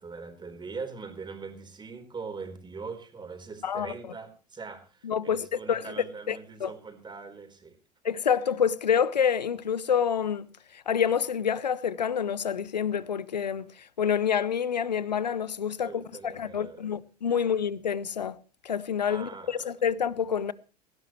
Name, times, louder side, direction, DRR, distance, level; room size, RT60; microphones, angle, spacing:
voice 1, 0.0-7.8 15.8-16.9 17.3-17.5 19.1-19.7, right 4 dB, 20° right, 4.2 m, -42 dB
voice 2, 3.6-3.9 5.0-5.9 6.3-6.7 8.0-18.4 18.6-20.5, left 7 dB, 85° left, 0.8 m, -28 dB
19.0 x 16.5 x 3.1 m
figure-of-eight pair, 75°, 21 cm